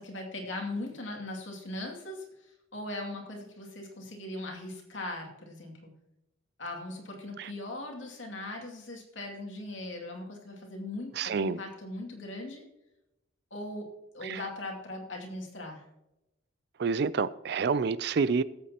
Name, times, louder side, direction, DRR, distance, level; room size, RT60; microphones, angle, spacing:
voice 1, 0.0-2.2 2.7-5.9 6.6-12.6 13.5-15.8, left 2 dB, 75° left, 2.5 m, -39 dB
voice 2, 11.2-11.6 14.2-14.4 16.8-18.4, right 5 dB, 55° right, 0.4 m, -28 dB
20.0 x 8.4 x 2.9 m
head